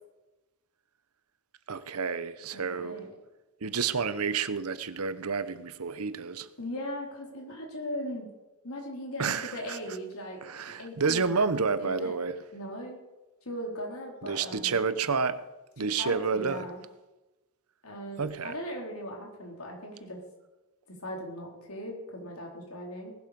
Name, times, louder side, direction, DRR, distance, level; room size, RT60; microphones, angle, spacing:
voice 1, 1.7-3.0 3.6-6.5 9.2-9.8 10.4-12.4 14.2-15.4 15.8-16.7 18.2-18.5, right 5 dB, 85° right, 0.9 m, -30 dB
voice 2, 2.5-3.1 6.6-8.3 8.6-10.4 10.7-12.1 12.5-13.0 13.4-14.8 15.8-16.8 17.8-20.2 20.9-23.2, equal, 80° left, 4.3 m, -39 dB
19.0 x 11.5 x 5.3 m
head